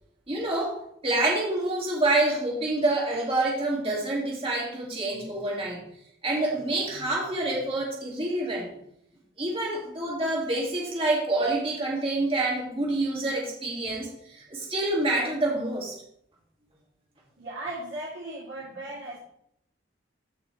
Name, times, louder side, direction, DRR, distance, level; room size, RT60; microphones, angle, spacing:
voice 1, 0.3-0.8 1.0-5.8 6.2-8.7 9.4-15.9, right 2 dB, 30° right, -3 dB, 2.4 m, -27 dB
voice 2, 17.4-19.2, right 1 dB, 80° right, -7 dB, 3.3 m, -37 dB
14.5 x 6.0 x 3.3 m, 0.73 s
head